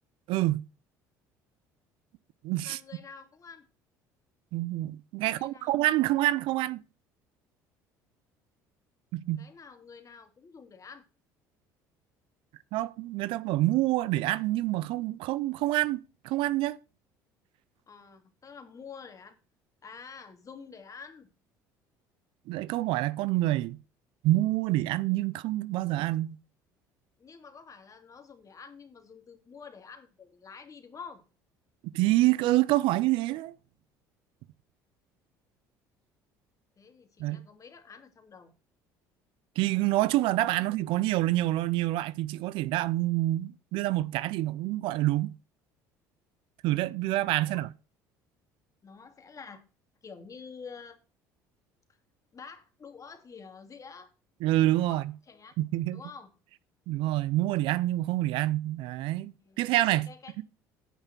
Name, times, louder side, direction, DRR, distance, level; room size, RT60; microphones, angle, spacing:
voice 1, 0.3-0.6 2.4-2.8 4.5-6.8 9.1-9.5 12.7-16.8 22.5-23.8 24.2-26.4 31.9-33.5 37.2-37.4 39.6-45.3 46.6-47.7 54.4-55.0 55.6-56.0 56.9-60.1 60.4-60.5, right 16 dB, 65° right, 0.5 m, -27 dB
voice 2, 2.6-3.7 5.2-5.8 9.4-11.1 17.9-19.4 19.8-21.3 27.2-31.2 36.8-38.5 47.4-47.6 48.8-49.6 50.0-51.0 52.3-54.1 54.9-55.5 55.9-56.3 59.4-59.6 60.1-60.3, left 5 dB, 35° left, 2.7 m, -48 dB
9.7 x 5.6 x 7.2 m
hypercardioid pair, 70°, 9 cm